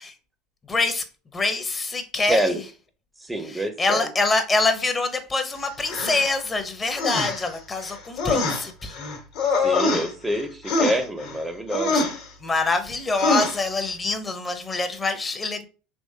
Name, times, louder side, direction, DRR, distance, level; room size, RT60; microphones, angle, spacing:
voice 1, 0.7-1.0 1.3-2.6 3.4-9.0 11.9-12.0 12.4-15.7, left 3 dB, 25° left, 0.7 m, -25 dB
voice 2, 2.3-2.6 3.2-4.1 9.5-11.9, right 1 dB, 10° right, 0.6 m, -26 dB
sound 1, 5.8-6.3 7.0-7.5 7.8-10.4 10.6-11.4 11.7-12.2 13.2-13.6, left 3 dB, 60° left, 1.1 m, -24 dB
3.5 x 2.9 x 2.7 m
hypercardioid pair, 80°, 0 cm